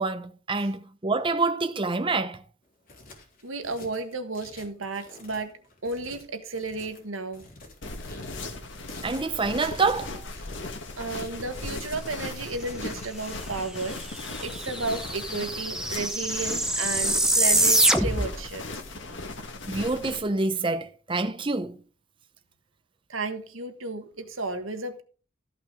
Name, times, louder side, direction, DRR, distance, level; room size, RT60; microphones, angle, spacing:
voice 1, 0.0-2.4 9.0-10.3 19.7-21.8, right 3 dB, 25° right, 0.6 m, -27 dB
sound 1, 2.6-19.4, left 3 dB, 45° left, 3.4 m, -49 dB
voice 2, 3.4-5.5 5.8-7.4 11.0-14.0 14.4-18.6 23.1-25.0, right 3 dB, 90° right, 1.5 m, -33 dB
sound 2, 7.8-20.2, left 2 dB, 65° left, 1.9 m, -38 dB
sound 3, 13.9-14.0 14.2-18.4, right 1 dB, 5° right, 1.0 m, -24 dB
13.5 x 5.9 x 5.0 m
head